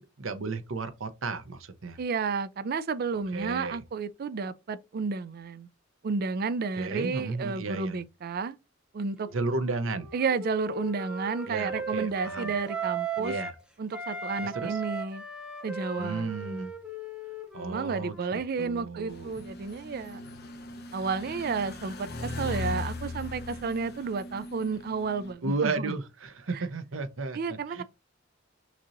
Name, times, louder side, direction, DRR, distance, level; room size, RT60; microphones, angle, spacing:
voice 1, 0.0-2.0 3.3-3.8 6.8-8.0 9.3-10.1 11.5-12.5 13.2-13.5 14.4-14.8 16.0-16.7 17.5-19.4 25.4-27.8, right 3 dB, 80° right, 0.8 m, -34 dB
voice 2, 2.0-5.7 6.0-8.6 8.9-9.3 10.1-13.3 13.8-15.2 15.6-16.3 17.6-20.2 20.9-25.9 26.5-26.6 27.3-27.8, right 5 dB, 50° right, 0.4 m, -31 dB
Wind instrument woodwind instrument, 9.2-13.6 13.9-18.4, right 3 dB, 5° right, 0.7 m, -37 dB
sound 1, 19.1-25.3, left 2 dB, 55° left, 0.9 m, -39 dB
6.0 x 2.9 x 2.6 m
head